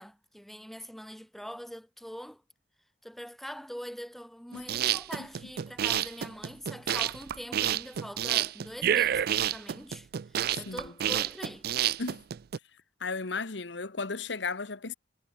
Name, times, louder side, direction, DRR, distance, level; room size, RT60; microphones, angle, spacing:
voice 1, 0.0-2.4 3.0-11.7, equal, ahead, 2.9 m, -43 dB
sound 1, 4.5-12.6, right 10 dB, 55° right, 0.4 m, -29 dB
voice 2, 13.0-14.9, left 4 dB, 70° left, 1.3 m, -34 dB
head